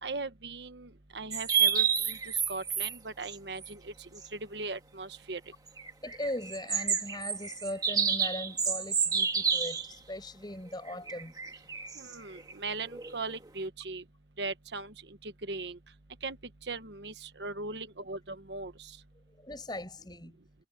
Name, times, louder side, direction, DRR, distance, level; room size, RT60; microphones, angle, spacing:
voice 1, 0.0-5.4 12.0-14.0 14.4-15.8 16.2-16.4 16.7-19.0, right 3 dB, 80° right, 1.2 m, -39 dB
sound 1, 1.3-3.0 3.2-3.3 3.6-3.7 4.2-4.3 5.7-9.9 10.9-13.5, right 7 dB, 20° right, 1.6 m, -30 dB
voice 2, 6.0-11.4 19.3-20.4, left 1 dB, 25° left, 5.7 m, -39 dB
head